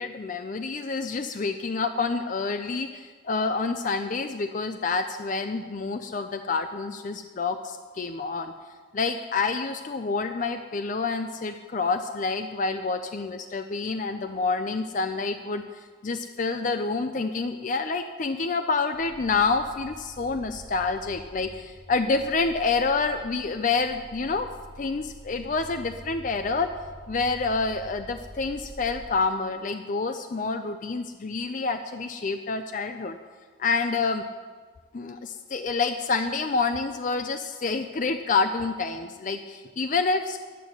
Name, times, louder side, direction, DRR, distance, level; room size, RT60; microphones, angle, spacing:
voice 1, 0.0-8.5 8.9-24.5 24.8-26.7 27.1-33.2 33.6-34.2 34.9-40.4, left 4 dB, 40° left, 8 dB, 0.4 m, -28 dB
sound 1, 18.9-29.1, equal, 5° left, 1.6 m, -46 dB
11.0 x 9.1 x 6.4 m, 1.5 s
head